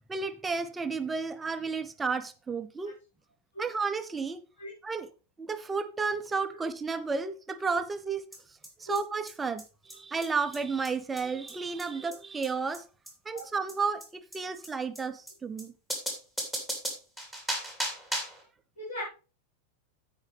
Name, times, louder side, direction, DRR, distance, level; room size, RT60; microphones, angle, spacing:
voice 1, 0.1-2.9 3.6-4.4 4.8-5.1 5.4-8.2 8.8-12.8 13.2-15.7, right 4 dB, 15° right, 0.8 m, -32 dB
voice 2, 2.8-2.9 3.5-3.6 4.6-4.7 8.9-9.0 12.0-12.1 13.3-13.4 18.8-19.0, left 1 dB, 60° left, 3.8 m, -38 dB
sound 1, 8.3-8.4 8.6-8.7 9.0-9.1 9.3-9.4 9.6-9.7 9.9-10.0 10.2-10.3 10.5-10.6 10.8-10.9 11.2-11.3 11.5-11.6 11.8-11.9 12.1-12.2 12.4-12.5 12.7-12.8 13.1-13.2 13.4-13.5 13.7-13.8 14.0-14.1 14.3-14.4 14.6-14.7 15.0-15.1 15.3-15.4 15.6-15.7 15.9-18.4, right 1 dB, 5° left, 3.0 m, -35 dB
15.5 x 5.2 x 3.4 m
figure-of-eight pair, 90°, 0 cm